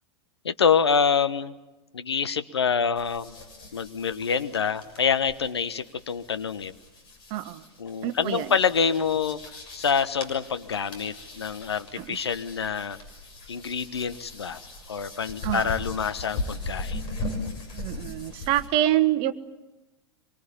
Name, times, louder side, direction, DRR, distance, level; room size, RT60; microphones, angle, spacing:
voice 1, 0.4-1.5 1.9-3.4 3.7-6.7 7.8-9.4 9.7-13.0 13.5-14.6 14.9-17.0, left 6 dB, 75° left, 12 dB, 1.2 m, -26 dB
sound 1, 3.0-18.7, left 2 dB, 35° left, 6.6 m, -39 dB
voice 2, 7.3-7.6 8.0-8.5 12.0-12.2 15.4-15.7 17.7-19.3, right 13 dB, 40° right, 13 dB, 1.3 m, -26 dB
25.0 x 24.0 x 8.5 m, 1.1 s
figure-of-eight pair, 95°, 14 cm